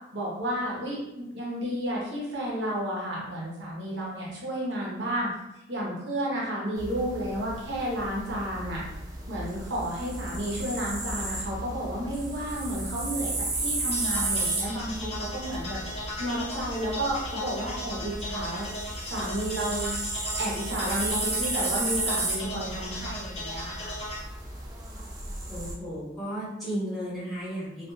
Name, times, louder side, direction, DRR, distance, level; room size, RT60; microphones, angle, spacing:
voice 1, 0.1-5.3 5.7-8.8 9.3-15.8 16.2-18.7 19.1-20.0 20.4-24.0, equal, 70° right, -5 dB, 0.8 m, -32 dB
sound 1, 6.8-25.7, right 2 dB, 20° right, 0.4 m, -34 dB
sound 2, 13.9-24.2, left 1 dB, 35° left, 0.6 m, -37 dB
voice 2, 25.5-27.9, equal, ahead, -11 dB, 1.1 m, -34 dB
2.5 x 2.2 x 2.4 m, 0.88 s
head